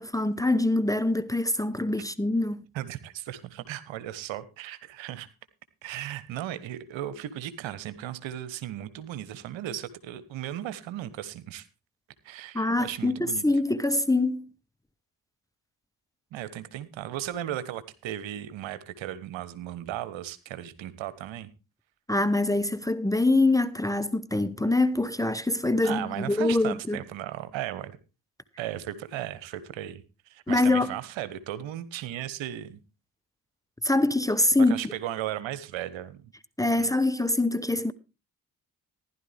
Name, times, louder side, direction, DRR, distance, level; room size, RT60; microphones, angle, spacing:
voice 1, 0.0-2.6 12.5-14.5 22.1-27.0 30.5-30.9 33.8-34.8 36.6-37.9, left 2 dB, 5° left, 0.9 m, -24 dB
voice 2, 2.7-5.3 5.8-11.6 12.2-13.4 16.3-21.5 25.8-28.0 28.6-32.8 34.7-36.3 36.8-36.9, right 12 dB, 65° right, 1.3 m, -36 dB
15.0 x 11.5 x 3.5 m
hypercardioid pair, 40°, 49 cm